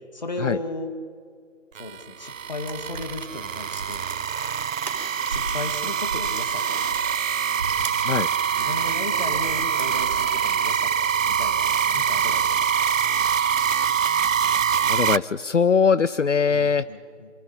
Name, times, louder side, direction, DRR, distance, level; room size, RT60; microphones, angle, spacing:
voice 1, 0.1-0.9 1.8-4.1 5.3-7.2 8.6-10.9 11.3-13.0 16.5-17.3, left 2 dB, 35° left, 7 dB, 2.0 m, -35 dB
sound 1, 1.8-15.2, right 8 dB, 80° right, 0.5 m, -24 dB
sound 2, 2.6-5.7 6.0-8.8 9.3-10.4, right 3 dB, 35° right, 4.6 m, -37 dB
voice 2, 14.9-16.8, left 6 dB, 70° left, 16 dB, 0.7 m, -21 dB
27.5 x 23.5 x 5.6 m, 2.1 s
figure-of-eight pair, 170°, 38 cm